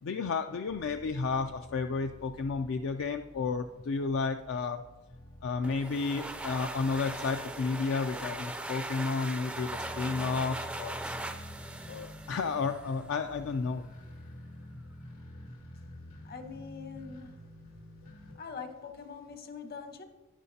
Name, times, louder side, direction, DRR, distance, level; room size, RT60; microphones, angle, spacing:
voice 1, 0.0-4.8 5.4-11.2 11.9-13.9, left 4 dB, 70° left, 0.4 m, -32 dB
sound 1, 0.7-18.3, equal, 85° left, 2.4 m, -49 dB
sound 2, 5.6-13.1, right 2 dB, 5° right, 0.3 m, -40 dB
voice 2, 16.2-17.4 18.4-20.0, left 5 dB, 50° left, 1.0 m, -43 dB
12.0 x 9.6 x 2.7 m
head